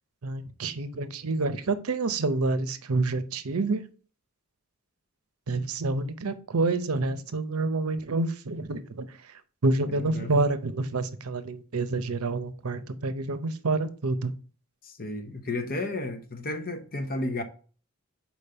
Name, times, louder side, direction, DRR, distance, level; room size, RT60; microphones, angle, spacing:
voice 1, 0.2-3.8 5.5-14.3, right 3 dB, 85° right, 0.7 m, -28 dB
voice 2, 9.9-10.3 14.8-17.4, left 2 dB, 45° left, 0.9 m, -33 dB
5.1 x 4.6 x 5.7 m
head